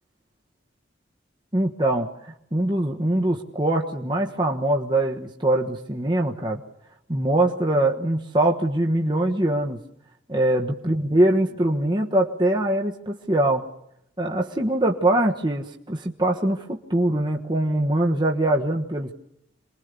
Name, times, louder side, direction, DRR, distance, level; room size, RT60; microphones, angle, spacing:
voice 1, 1.5-6.6 7.1-9.8 10.3-13.7 14.2-19.1, right 1 dB, 25° right, 0 dB, 1.3 m, -23 dB
27.5 x 21.5 x 6.9 m, 0.79 s
head